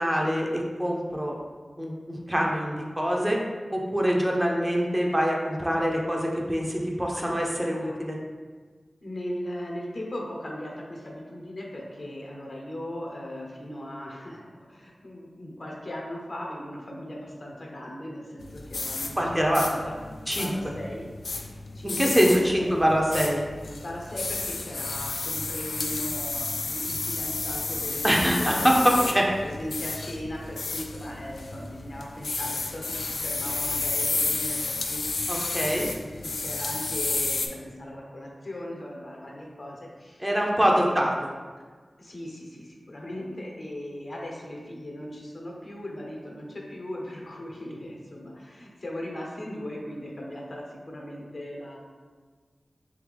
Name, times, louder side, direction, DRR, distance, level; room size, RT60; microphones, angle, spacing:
voice 1, 0.0-1.4 1.8-3.4 3.7-8.2 19.2-19.6 20.3-20.5 21.8-23.4 28.0-29.3 35.3-35.8 40.2-41.1, equal, 15° right, -1 dB, 0.6 m, -24 dB
voice 2, 7.1-8.0 9.0-20.0 20.3-22.8 23.6-41.1 42.0-51.8, left 1 dB, 60° left, -2 dB, 0.9 m, -38 dB
sound 1, 18.4-37.5, left 3 dB, 90° left, 0.3 m, -32 dB
3.6 x 2.9 x 3.4 m, 1.5 s
cardioid pair, 45°, 0 cm